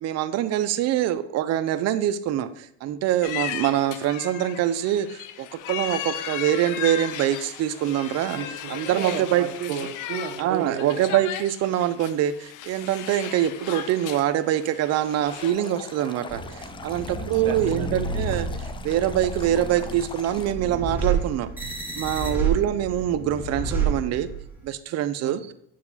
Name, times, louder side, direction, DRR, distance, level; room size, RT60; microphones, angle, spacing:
voice 1, 0.0-8.4 8.7-9.7 10.4-21.5 22.0-24.3 24.6-25.4, right 11 dB, 50° right, 12 dB, 0.5 m, -24 dB
sound 1, 3.2-15.5, left 10 dB, 60° left, 0.6 m, -36 dB
voice 2, 8.3-11.2 16.9-17.9 22.3-22.6 25.2-25.5, right 8 dB, 80° right, 8 dB, 0.9 m, -34 dB
Stream, 15.3-20.5, left 5 dB, 15° left, 0.3 m, -42 dB
sound 2, 16.3-24.6, right 4 dB, 5° right, 1.9 m, -30 dB
7.4 x 4.7 x 4.0 m, 0.72 s
cardioid pair, 130°, 34 cm